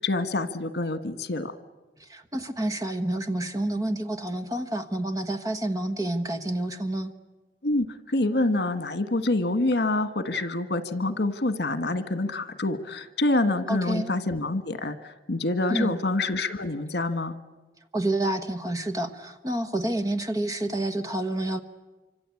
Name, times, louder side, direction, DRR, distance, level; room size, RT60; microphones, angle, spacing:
voice 1, 0.0-1.5 7.6-17.3, left 2 dB, 75° left, 11 dB, 1.5 m, -26 dB
voice 2, 2.0-7.1 13.7-14.1 15.7-16.0 17.9-21.6, right 1 dB, 20° right, 6 dB, 1.3 m, -29 dB
26.5 x 25.0 x 8.5 m, 1.2 s
head